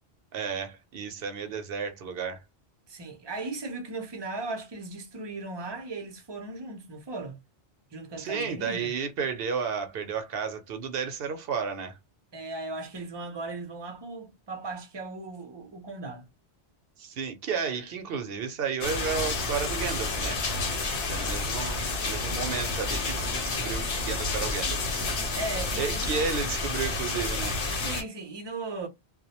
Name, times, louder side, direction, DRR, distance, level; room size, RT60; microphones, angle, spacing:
voice 1, 0.3-2.4 8.2-12.0 17.0-20.4 21.1-24.8 25.8-27.6, right 6 dB, 65° right, 0.7 m, -32 dB
voice 2, 2.9-7.4 7.9-8.9 12.3-16.3 25.4-26.2 27.7-28.9, right 3 dB, 35° right, 0.5 m, -37 dB
sound 1, 18.8-28.0, left 3 dB, 85° left, 1.0 m, -30 dB
2.2 x 2.0 x 2.8 m
omnidirectional pair, 1.1 m